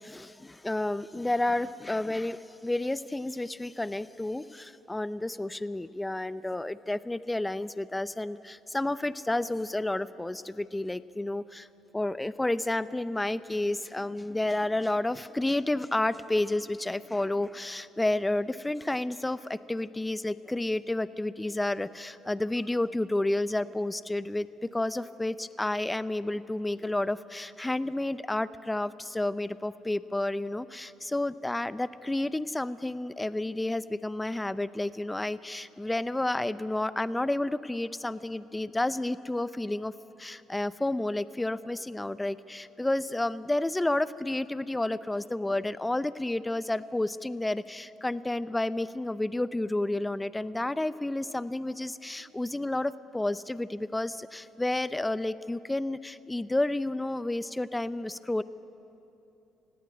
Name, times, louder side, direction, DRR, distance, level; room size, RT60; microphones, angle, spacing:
voice 1, 0.0-11.7 11.9-39.9 40.2-58.4, left 2 dB, 15° left, 15 dB, 0.6 m, -31 dB
18.0 x 16.5 x 9.7 m, 2.9 s
supercardioid pair, 70°, 0 cm